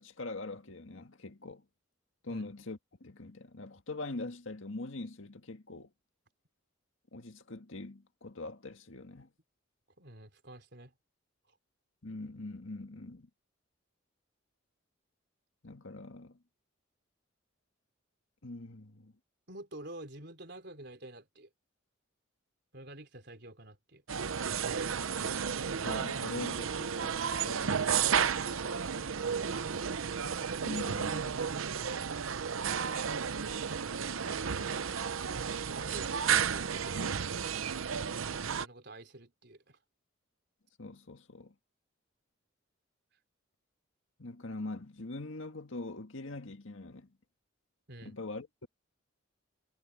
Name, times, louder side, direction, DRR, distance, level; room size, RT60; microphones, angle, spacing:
voice 1, 0.0-1.6 2.2-5.9 7.1-9.3 12.0-13.3 15.6-16.4 18.4-19.1 25.8-27.8 30.6-31.4 40.8-41.5 44.2-47.1 48.0-48.7, left 2 dB, 75° left, 1.8 m, -43 dB
voice 2, 10.0-10.9 19.5-21.5 22.7-24.0 28.0-29.8 35.6-37.3 38.3-39.8 47.9-48.2, right 1 dB, 55° right, 4.3 m, -49 dB
sound 1, 24.1-38.7, right 7 dB, 90° right, 0.8 m, -32 dB
head